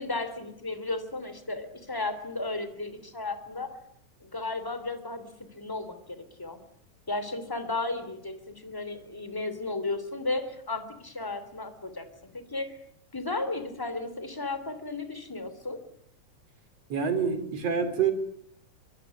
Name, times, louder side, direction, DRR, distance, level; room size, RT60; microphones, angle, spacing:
voice 1, 0.0-3.8 4.2-6.6 7.1-12.8 13.1-15.8, left 2 dB, 5° left, 10 dB, 3.0 m, -34 dB
voice 2, 16.9-18.1, right 6 dB, 55° right, 11 dB, 4.5 m, -26 dB
24.5 x 24.0 x 9.7 m, 0.69 s
omnidirectional pair, 3.4 m